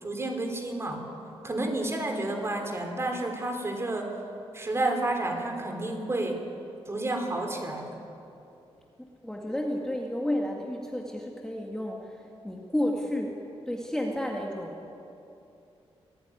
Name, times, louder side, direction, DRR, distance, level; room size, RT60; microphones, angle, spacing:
voice 1, 0.0-1.1 1.4-4.1 4.5-6.4 6.9-8.0, right 2 dB, 25° right, 4 dB, 3.4 m, -30 dB
voice 2, 9.2-14.9, left 1 dB, 5° left, 0 dB, 2.1 m, -32 dB
25.5 x 17.0 x 9.8 m, 2.7 s
wide cardioid pair, 140°, 11 cm